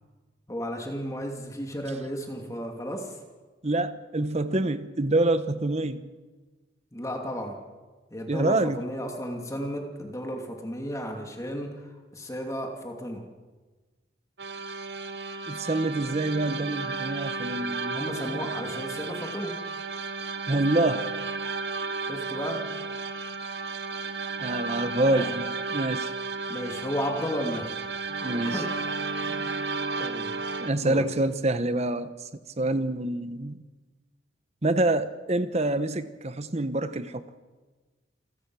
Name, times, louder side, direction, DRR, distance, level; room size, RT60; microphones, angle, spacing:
voice 1, 0.5-3.2 6.9-7.6 8.1-13.3 17.9-19.6 22.0-22.6 25.0-25.4 26.5-27.7 28.3-28.7 29.3-29.5 30.0-30.3 30.8-31.1, equal, 15° left, 2 dB, 2.6 m, -34 dB
voice 2, 3.6-6.0 8.3-8.8 15.5-18.0 20.5-21.1 24.4-26.1 28.2-28.6 30.6-32.1 32.6-33.6 34.6-37.2, right 2 dB, 35° right, 11 dB, 1.0 m, -26 dB
sound 1, 14.4-30.7, right 4 dB, 65° right, 1.1 m, -33 dB
28.0 x 15.5 x 6.3 m, 1.3 s
head